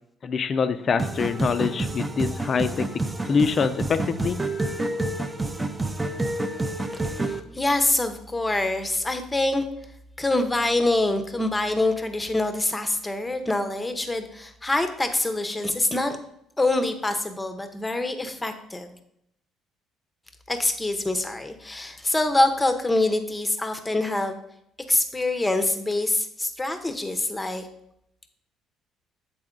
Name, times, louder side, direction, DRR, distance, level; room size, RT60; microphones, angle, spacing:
voice 1, 0.2-2.8 3.3-4.4, left 6 dB, 40° left, 11 dB, 0.5 m, -24 dB
sound 1, 1.0-7.4, right 2 dB, 15° right, 0.5 m, -28 dB
voice 2, 7.0-9.6 10.2-16.2 16.6-18.9 20.5-24.4 24.9-27.7, left 2 dB, 15° left, 8 dB, 0.7 m, -25 dB
7.7 x 4.1 x 3.8 m, 0.76 s
cardioid pair, 105°, 0 cm